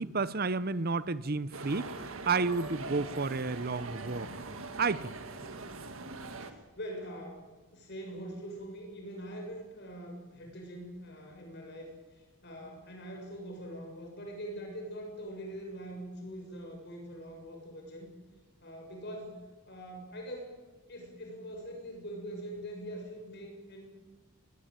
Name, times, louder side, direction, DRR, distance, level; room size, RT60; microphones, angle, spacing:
voice 1, 0.0-4.3 4.8-5.1, right 4 dB, 45° right, 0.8 m, -31 dB
sound 1, 1.5-6.5, right 3 dB, 65° right, 1.8 m, -42 dB
voice 2, 6.1-7.5 7.7-11.9 12.4-18.1 18.6-20.5 20.9-23.9, equal, 50° left, 6.7 m, -43 dB
20.5 x 19.5 x 9.0 m
head